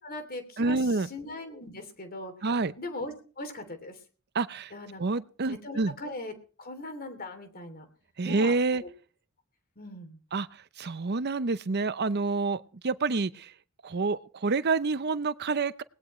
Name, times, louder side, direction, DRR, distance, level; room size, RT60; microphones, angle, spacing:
voice 1, 0.0-2.3 2.8-4.0 4.7-5.0 5.5-7.9 8.2-8.9 9.8-10.2, left 2 dB, 45° left, 3.0 m, -40 dB
voice 2, 0.6-1.1 2.4-2.7 4.3-4.7 5.0-5.9 8.2-8.8 10.3-10.5 10.8-13.5 13.8-15.8, right 3 dB, 50° right, 0.7 m, -28 dB
19.0 x 18.5 x 3.2 m
head